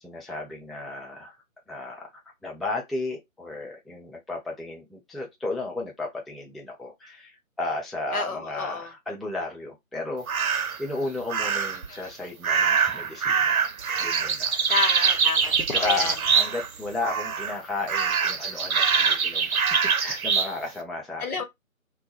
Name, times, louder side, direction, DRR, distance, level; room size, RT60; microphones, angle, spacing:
voice 1, 0.0-13.7 14.0-14.6 15.4-21.4, left 3 dB, ahead, 0.3 m, -34 dB
voice 2, 8.1-8.9 11.9-12.0 14.7-16.1 21.2-21.4, left 4 dB, 90° left, 0.9 m, -30 dB
sound 1, 10.3-10.8 11.3-11.9 12.4-16.8 17.0-17.6 17.9-20.5, right 6 dB, 80° right, 0.6 m, -24 dB
2.4 x 2.1 x 2.9 m
figure-of-eight pair, 165°, 42 cm